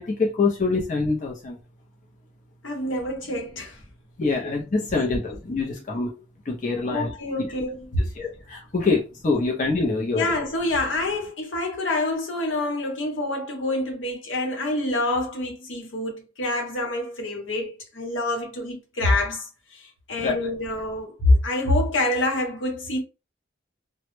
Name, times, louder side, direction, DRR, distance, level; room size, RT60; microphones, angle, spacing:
voice 1, 0.0-1.6 4.2-6.1 6.5-7.1 8.2-10.3 20.2-20.4, left 3 dB, 40° left, 0.4 m, -25 dB
voice 2, 2.6-3.8 4.2-4.5 6.9-8.0 9.4-9.5 10.1-23.0, left 2 dB, 85° left, 0.9 m, -26 dB
2.0 x 2.0 x 3.0 m
head